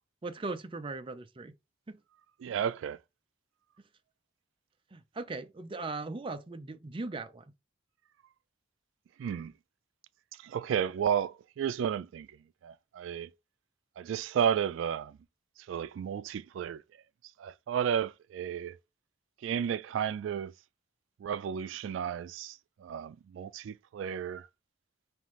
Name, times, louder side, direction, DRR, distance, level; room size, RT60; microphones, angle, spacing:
voice 1, 0.2-1.5 1.9-2.0 2.5-2.6 4.9-7.4, right 3 dB, 30° right, 0.5 m, -39 dB
voice 2, 2.4-3.0 9.2-9.5 10.3-12.4 12.6-13.3 14.0-15.2 15.7-16.8 17.4-18.8 19.4-20.5 21.2-24.5, right 8 dB, 85° right, 0.3 m, -33 dB
5.4 x 2.5 x 3.1 m
head